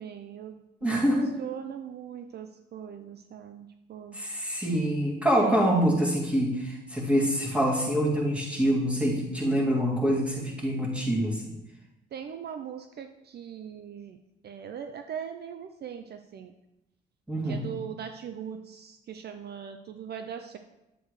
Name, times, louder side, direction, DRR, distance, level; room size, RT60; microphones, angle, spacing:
voice 1, 0.0-4.2 5.4-5.6 12.1-14.2 14.4-16.5 17.4-20.6, right 8 dB, 55° right, 7 dB, 0.6 m, -40 dB
voice 2, 0.8-1.3 4.1-11.4 17.3-17.7, equal, 5° right, -3 dB, 2.5 m, -25 dB
10.0 x 7.8 x 3.2 m, 0.93 s
cardioid pair, 90°, 20 cm